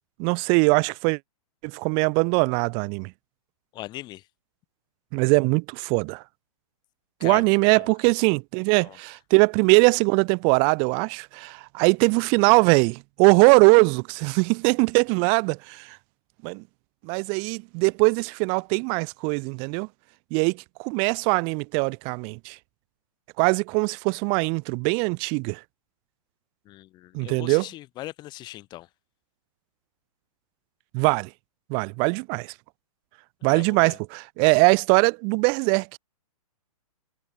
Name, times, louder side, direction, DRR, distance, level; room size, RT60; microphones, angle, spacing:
voice 1, 0.2-1.2 1.6-3.1 5.1-6.2 7.2-16.0 16.4-16.6 17.0-19.9 20.3-22.6 23.4-25.6 27.1-27.7 30.9-31.3 31.7-32.5 33.4-36.0, right 38 dB, 25° right, 1.2 m, -21 dB
voice 2, 3.7-4.2 7.2-7.4 7.8-7.9 8.8-9.0 26.7-28.9 33.4-34.0, left 16 dB, 20° left, 6.2 m, -39 dB
hypercardioid pair, 160°, 19 cm